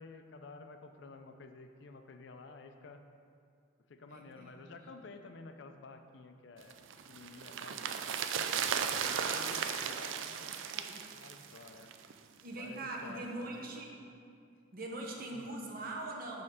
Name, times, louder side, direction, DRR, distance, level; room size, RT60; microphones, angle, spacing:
voice 1, 0.0-3.0 3.9-6.8 7.1-7.8 8.9-10.6 11.1-11.9 12.5-14.0 15.3-15.6, left 3 dB, 60° left, 7 dB, 0.4 m, -52 dB
voice 2, 4.1-4.7 9.0-9.9 10.2-11.1 12.4-13.9 14.7-16.4, right 2 dB, 45° right, 0 dB, 0.8 m, -43 dB
sound 1, 6.7-12.1 12.4-12.5, right 7 dB, 70° right, 0.4 m, -36 dB
6.4 x 3.7 x 5.6 m, 2.3 s
head